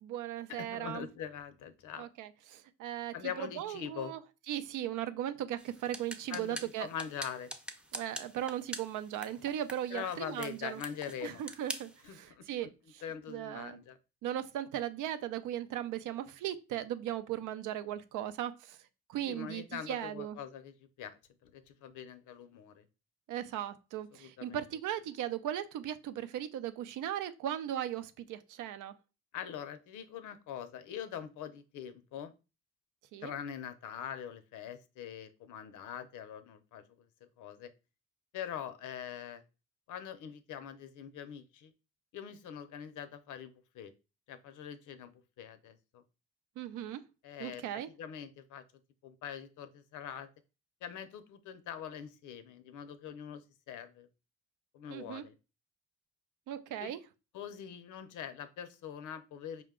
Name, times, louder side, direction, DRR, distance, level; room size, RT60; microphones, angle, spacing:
voice 1, 0.0-1.1 2.0-4.2 4.5-6.9 7.9-10.8 11.2-13.0 13.3-13.8 14.2-18.8 19.1-20.4 23.3-28.9 33.1-33.3 46.6-47.0 47.4-47.9 54.9-55.2 56.5-57.0, right 11 dB, 85° right, 0.5 m, -38 dB
voice 2, 0.6-2.1 3.1-4.2 6.3-7.5 9.9-11.4 12.0-12.7 13.0-14.0 19.2-22.8 24.1-24.6 29.3-32.3 33.2-37.1 37.4-37.7 38.3-39.4 39.9-41.7 42.1-43.9 44.3-46.0 47.2-48.6 49.0-50.3 50.8-53.4 53.7-54.1 54.7-55.3 56.8-56.9 57.3-59.6, left 8 dB, 80° left, 0.6 m, -43 dB
sound 1, 5.6-12.0, right 1 dB, 5° right, 0.5 m, -45 dB
4.8 x 2.2 x 3.6 m
cardioid pair, 90°, 30 cm